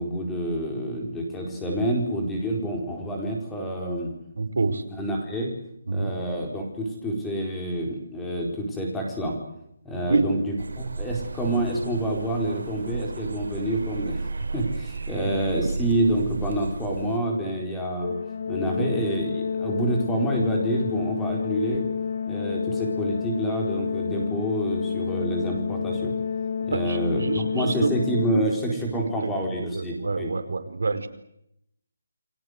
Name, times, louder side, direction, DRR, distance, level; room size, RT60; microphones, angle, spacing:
voice 1, 0.0-4.1 4.9-5.5 5.9-9.4 9.8-14.3 14.5-18.1 18.5-21.8 22.3-26.1 26.6-27.2 27.5-30.3, right 1 dB, 5° left, 0 dB, 4.4 m, -28 dB
voice 2, 4.4-4.8 5.9-6.1 10.1-10.3 15.6-15.7 18.8-18.9 26.7-27.9 29.5-31.1, right 3 dB, 65° right, 8 dB, 4.9 m, -27 dB
sound 1, 10.6-17.2, right 3 dB, 85° right, 4.4 m, -33 dB
Organ, 18.0-28.9, left 6 dB, 45° left, 1.4 m, -29 dB
29.5 x 23.0 x 8.1 m, 0.78 s
hypercardioid pair, 180°, 0 cm